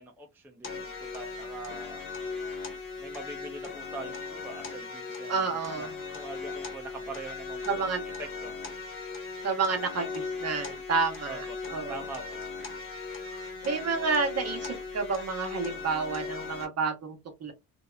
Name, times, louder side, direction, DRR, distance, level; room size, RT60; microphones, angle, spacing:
voice 1, 0.0-2.1 3.0-8.5 11.3-11.6 11.9-12.4, right 2 dB, 5° right, 0.4 m, -43 dB
sound 1, 0.6-16.7, left 4 dB, 35° left, 0.9 m, -38 dB
voice 2, 5.3-5.9 7.7-8.0 9.4-12.0 13.3-17.5, right 4 dB, 45° right, 0.8 m, -30 dB
2.7 x 2.1 x 2.3 m
cardioid pair, 110°, 35 cm